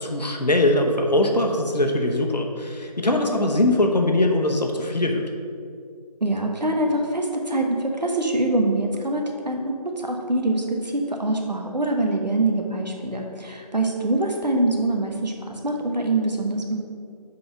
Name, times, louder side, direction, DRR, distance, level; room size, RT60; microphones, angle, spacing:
voice 1, 0.0-5.2, left 1 dB, 80° left, 3 dB, 1.0 m, -21 dB
voice 2, 6.2-16.8, right 2 dB, 85° right, 2 dB, 1.3 m, -24 dB
5.8 x 5.2 x 5.9 m, 2.3 s
figure-of-eight pair, 170°, 21 cm